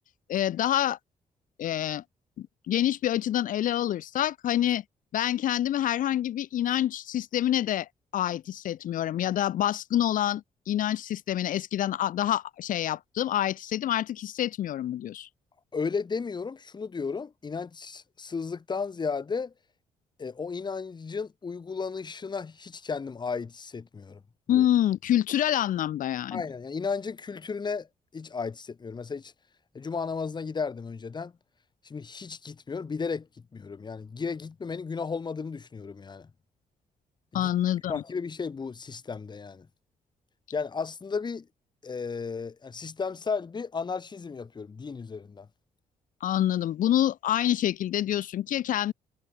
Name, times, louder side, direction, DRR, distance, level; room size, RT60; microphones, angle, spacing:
voice 1, 0.3-1.0 1.6-2.0 2.4-4.8 5.1-15.3 24.5-26.4 37.3-38.0 46.2-48.9, left 12 dB, 80° left, 4.1 m, -27 dB
voice 2, 15.7-19.5 20.2-24.2 24.5-24.7 26.3-27.9 28.1-29.3 29.7-31.3 31.8-33.3 33.5-36.3 37.3-37.5 37.9-39.7 40.5-41.5 41.8-45.5, left 5 dB, 35° left, 2.4 m, -34 dB
cardioid pair, 110°, 14 cm